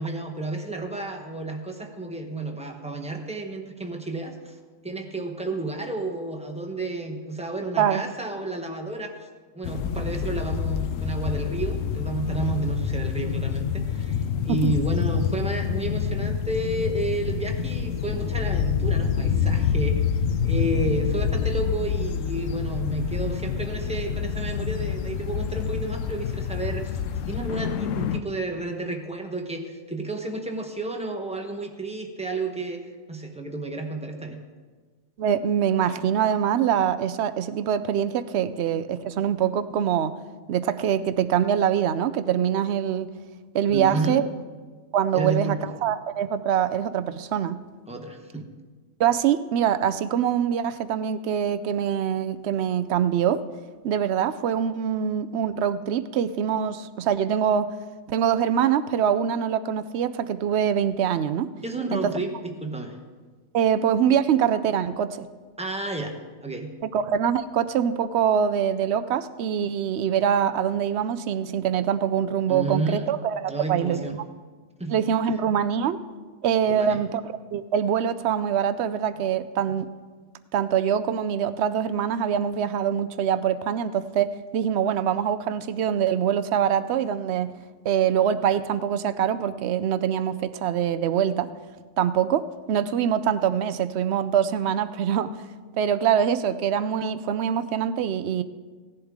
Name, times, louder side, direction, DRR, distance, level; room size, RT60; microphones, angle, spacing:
voice 1, 0.0-4.6 4.8-9.2 9.5-20.1 20.4-27.0 27.3-34.4 43.7-44.2 45.1-45.7 47.9-48.5 61.6-63.0 65.6-66.7 72.5-73.1 73.5-74.2 74.8-75.0 76.7-77.0, right 2 dB, 5° right, 3 dB, 0.9 m, -31 dB
sound 1, 9.6-28.2, left 7 dB, 75° left, 1.0 m, -27 dB
voice 2, 35.2-40.1 40.5-43.1 43.5-44.3 44.9-47.6 49.0-53.4 53.8-57.7 58.1-61.5 61.9-62.0 63.5-65.3 66.9-74.0 74.9-76.0 76.4-79.9 80.5-87.5 87.8-91.5 92.0-95.4 95.8-98.4, right 9 dB, 65° right, 13 dB, 0.7 m, -24 dB
16.5 x 11.0 x 3.6 m, 1.4 s
omnidirectional pair, 1.4 m